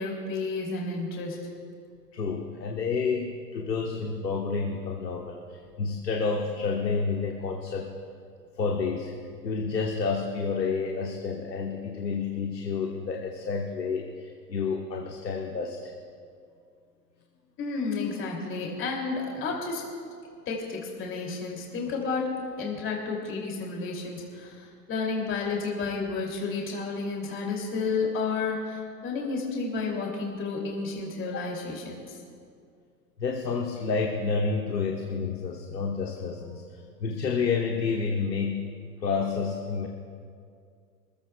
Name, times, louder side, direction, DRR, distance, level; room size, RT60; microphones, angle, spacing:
voice 1, 0.0-1.5 17.6-19.9 20.5-32.2, left 4 dB, 25° left, -1 dB, 2.8 m, -31 dB
voice 2, 2.1-7.9 8.6-9.1 9.4-15.9 33.2-38.6 39.0-39.9, left 5 dB, 80° left, 1 dB, 1.3 m, -29 dB
25.0 x 14.5 x 2.3 m, 2.3 s
figure-of-eight pair, 105°, 49 cm